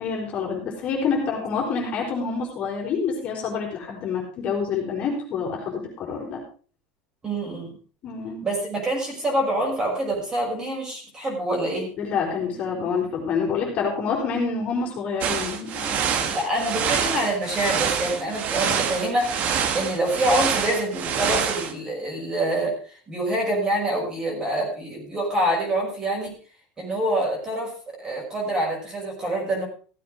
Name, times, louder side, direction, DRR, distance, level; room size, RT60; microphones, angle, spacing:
voice 1, 0.0-6.4 8.0-8.4 12.0-16.0, left 5 dB, 35° left, -1 dB, 4.7 m, -27 dB
voice 2, 7.2-7.8 8.4-11.9 16.0-26.4 26.8-29.6, right 1 dB, 20° right, -1 dB, 5.9 m, -26 dB
sound 1, 15.2-21.7, right 7 dB, 40° right, 1.5 m, -26 dB
16.0 x 8.5 x 4.9 m, 0.40 s
cardioid pair, 165°, 4 cm